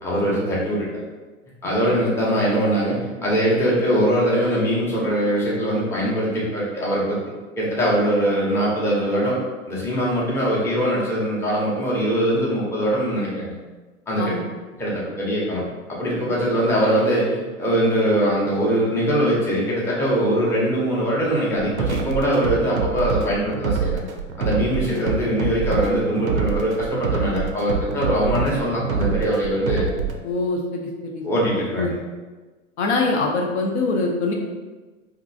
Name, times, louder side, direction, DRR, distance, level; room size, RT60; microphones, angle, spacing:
voice 1, 0.0-0.9 1.6-7.2 7.6-9.4 9.7-13.6 14.1-14.3 14.8-15.6 16.0-24.0 24.4-29.9 31.2-32.0, equal, 5° left, -6 dB, 0.6 m, -22 dB
sound 1, 21.6-30.2, right 5 dB, 90° right, 0.5 m, -26 dB
voice 2, 30.2-31.2 31.7-31.9 32.8-34.3, left 3 dB, 55° left, 1 dB, 0.6 m, -24 dB
2.9 x 2.5 x 2.6 m, 1.3 s
hypercardioid pair, 105°, 40 cm